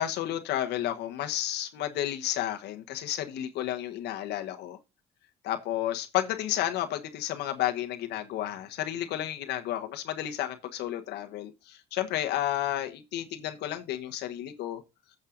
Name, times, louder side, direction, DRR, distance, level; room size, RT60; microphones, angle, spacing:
voice 1, 0.0-4.8 5.4-14.8, left 12 dB, 80° left, 1.2 m, -32 dB
8.6 x 6.5 x 3.8 m
cardioid pair, 110°, 17 cm